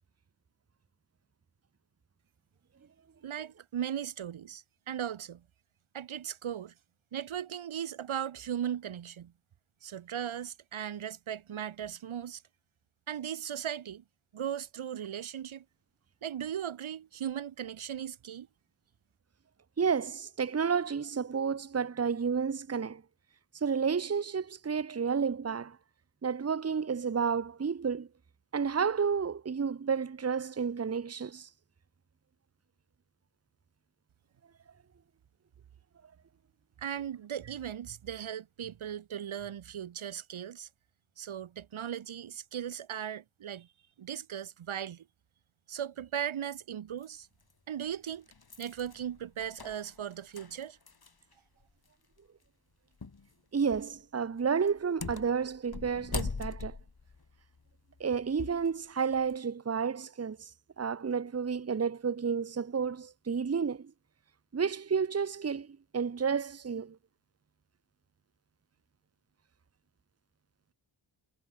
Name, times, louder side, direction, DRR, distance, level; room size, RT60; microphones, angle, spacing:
voice 1, 3.2-5.4 5.9-6.7 7.1-9.3 9.8-12.4 13.1-14.0 14.3-15.6 16.2-18.5 36.8-40.7 41.2-43.7 44.0-45.0 45.7-47.3 47.7-48.3 48.6-50.8, right 9 dB, 75° right, 1.0 m, -37 dB
voice 2, 19.8-23.0 23.6-25.8 26.2-28.1 28.5-31.5 53.5-56.8 58.0-60.5 60.8-63.9 64.5-67.0, right 6 dB, 30° right, 0.9 m, -31 dB
sound 1, 47.0-47.1 47.8-51.3 51.6-51.7 53.0-53.3 53.7-54.0 54.7-58.7 59.1-59.4, left 4 dB, 50° left, 3.5 m, -41 dB
cardioid pair, 45°, 48 cm